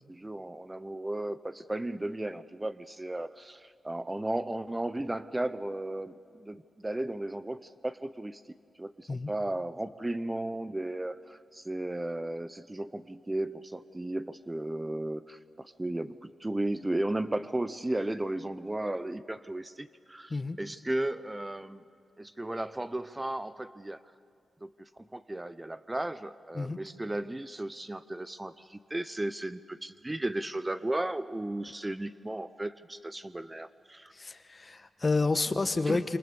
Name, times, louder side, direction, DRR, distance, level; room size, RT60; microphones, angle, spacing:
voice 1, 0.1-8.4 8.8-21.8 22.2-24.0 24.6-34.1 35.9-36.0, right 1 dB, 20° right, 13 dB, 0.7 m, -35 dB
voice 2, 34.1-36.2, left 3 dB, 35° left, 10 dB, 1.3 m, -29 dB
27.0 x 27.0 x 6.9 m, 2.3 s
cardioid pair, 70°, 0 cm